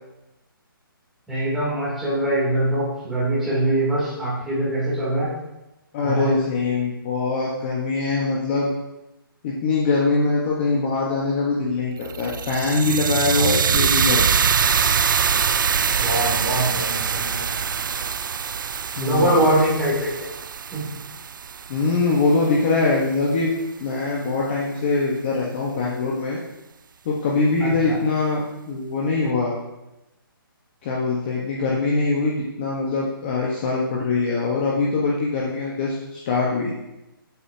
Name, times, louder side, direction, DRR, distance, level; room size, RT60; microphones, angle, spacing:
voice 1, 1.3-5.3 6.0-6.4 16.0-17.6 19.0-20.3 20.7-20.9 27.6-28.0, right 1 dB, ahead, -9 dB, 3.0 m, -23 dB
voice 2, 5.9-8.7 9.4-14.5 19.0-19.4 21.7-23.5 23.8-26.4 27.0-29.5 30.8-36.7, left 3 dB, 25° left, -4 dB, 1.3 m, -23 dB
sound 1, 12.0-22.2, right 6 dB, 60° right, 0.5 m, -23 dB
14.0 x 8.2 x 2.9 m, 0.96 s
hypercardioid pair, 165°, 12 cm